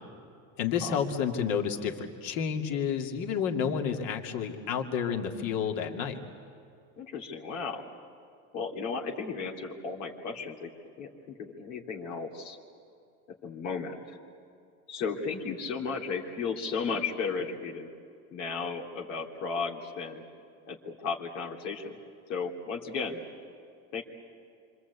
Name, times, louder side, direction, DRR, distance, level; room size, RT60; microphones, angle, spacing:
voice 1, 0.6-6.2, left 7 dB, 65° left, 3 dB, 2.7 m, -30 dB
voice 2, 7.0-7.8 8.5-10.7 11.0-12.6 13.4-14.2 14.9-17.9 18.3-20.2 20.7-22.0 22.3-23.2 23.9-24.0, left 5 dB, 85° left, 0 dB, 3.2 m, -34 dB
27.0 x 25.5 x 8.4 m, 2.4 s
supercardioid pair, 95°, 37 cm